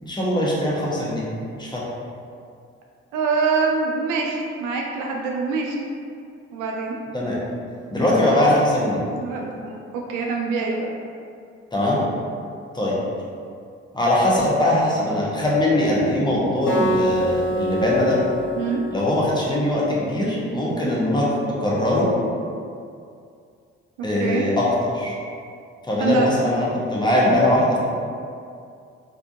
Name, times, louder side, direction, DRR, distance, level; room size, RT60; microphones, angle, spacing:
voice 1, 0.0-1.2 1.5-1.8 7.1-7.4 7.9-9.0 11.7-12.0 12.7-12.9 13.9-18.2 18.9-21.3 21.6-22.1 24.0-24.7 24.9-25.1 25.8-27.8, left 1 dB, 10° left, -6 dB, 0.9 m, -21 dB
voice 2, 3.1-5.8 6.5-7.0 9.1-10.9 18.6-18.8 24.2-24.4 26.0-26.3, right 4 dB, 60° right, 0 dB, 0.5 m, -24 dB
Acoustic guitar, 16.7-19.9, equal, 75° left, 0.9 m, -26 dB
3.4 x 2.6 x 2.6 m, 2.3 s
figure-of-eight pair, 45°, 36 cm